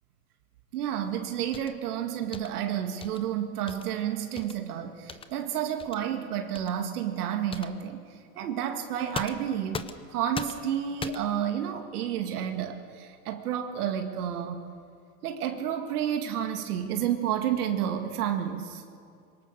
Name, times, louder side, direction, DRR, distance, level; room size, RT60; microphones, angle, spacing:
voice 1, 0.7-14.7 15.2-18.8, right 9 dB, 75° right, 5 dB, 2.1 m, -30 dB
sound 1, 1.5-1.8 2.3-2.5 3.0-3.2 3.7-3.9 4.4-4.6 5.1-5.3 5.8-6.0 6.5-6.7 7.5-7.8 9.1-10.1 10.3-10.7 11.0-11.4, left 5 dB, 10° left, 0.8 m, -38 dB
26.0 x 23.5 x 6.8 m, 2.4 s
hypercardioid pair, 120°, 45 cm